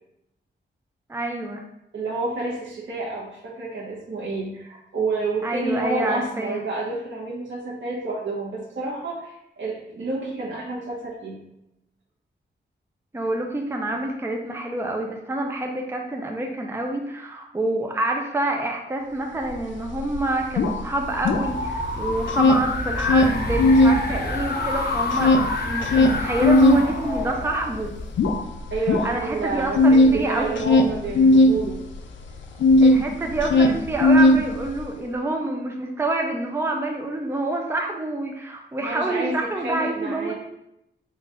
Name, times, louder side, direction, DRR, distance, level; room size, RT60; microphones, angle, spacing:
voice 1, 1.1-1.6 5.4-6.6 13.1-25.3 25.6-27.9 29.0-30.7 32.8-40.3, right 2 dB, 15° right, 2 dB, 0.5 m, -27 dB
voice 2, 1.9-11.4 28.7-31.8 38.8-40.3, right 3 dB, 85° right, -6 dB, 1.0 m, -29 dB
sound 1, 19.5-19.6 19.9-21.9 22.2-24.0 24.4-33.0 33.3-34.9, left 2 dB, 80° left, 0.4 m, -18 dB
sound 2, 21.0-28.2, left 2 dB, 55° left, 0.8 m, -28 dB
3.9 x 2.5 x 4.3 m, 0.82 s
wide cardioid pair, 120°, 19 cm